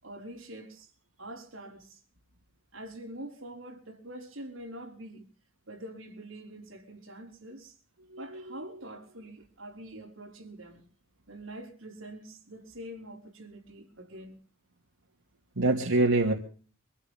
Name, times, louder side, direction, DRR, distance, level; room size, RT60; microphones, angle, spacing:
voice 1, 0.0-0.9 1.2-2.0 2.7-5.3 5.7-7.8 8.2-10.8 11.3-14.4, right 1 dB, 70° right, 5.5 m, -45 dB
voice 2, 8.1-8.8 15.6-16.3, right 2 dB, 85° right, 2.6 m, -26 dB
25.0 x 15.5 x 3.7 m
head